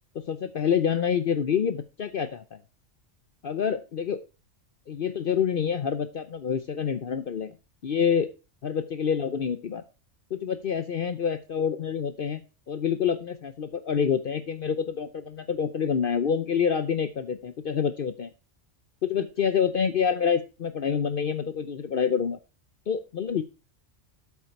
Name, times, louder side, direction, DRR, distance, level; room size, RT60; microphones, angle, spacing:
voice 1, 0.1-2.6 3.4-4.2 4.9-7.5 7.8-8.3 8.6-9.8 10.3-12.4 12.7-18.3 19.0-22.4 22.9-23.4, left 7 dB, 55° left, 11 dB, 0.8 m, -27 dB
8.2 x 7.2 x 4.6 m, 0.32 s
omnidirectional pair, 1.2 m